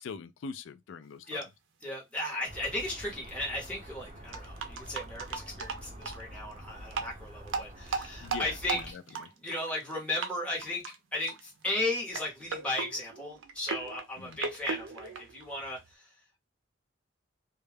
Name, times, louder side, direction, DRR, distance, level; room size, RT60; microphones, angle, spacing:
voice 1, 0.0-1.4 8.2-9.3 14.2-14.4, left 5 dB, 80° left, 0.4 m, -43 dB
sound 1, 1.4-1.5 1.8-1.9 2.9-3.0 3.2-3.3 4.3-6.2 6.9-7.1 7.5-9.9 10.2-10.3 10.6-11.0 11.3-11.6 12.1-15.9, right 5 dB, 85° right, 0.5 m, -37 dB
voice 2, 1.8-8.9 9.4-10.8 11.1-16.1, left 2 dB, 5° left, 0.9 m, -35 dB
sound 2, 2.5-8.9, equal, 35° right, 0.7 m, -47 dB
2.2 x 2.1 x 3.2 m
head